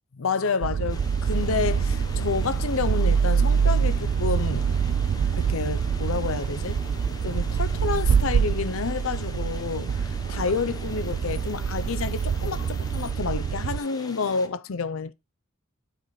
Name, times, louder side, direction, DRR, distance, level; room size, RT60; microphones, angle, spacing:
voice 1, 0.2-4.7 5.4-6.8 7.2-15.1, left 5 dB, 65° left, 0.6 m, -29 dB
sound 1, 0.6-13.8, right 6 dB, 65° right, 0.3 m, -25 dB
sound 2, 0.9-14.5, left 2 dB, 20° left, 0.9 m, -44 dB
sound 3, 1.3-13.1, left 1 dB, 90° left, 1.9 m, -44 dB
12.0 x 5.1 x 3.1 m
head